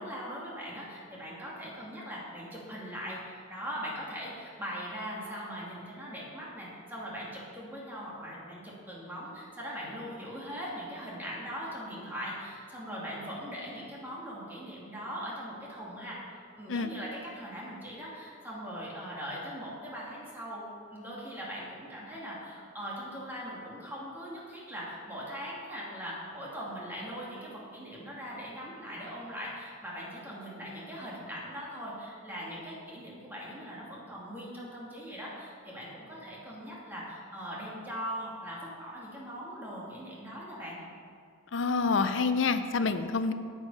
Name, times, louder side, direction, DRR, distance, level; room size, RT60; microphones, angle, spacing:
voice 1, 0.0-16.2 16.6-40.8, equal, 10° right, -6 dB, 2.5 m, -40 dB
voice 2, 41.5-43.3, left 4 dB, 70° left, 10 dB, 0.6 m, -27 dB
9.4 x 8.3 x 5.5 m, 2.3 s
head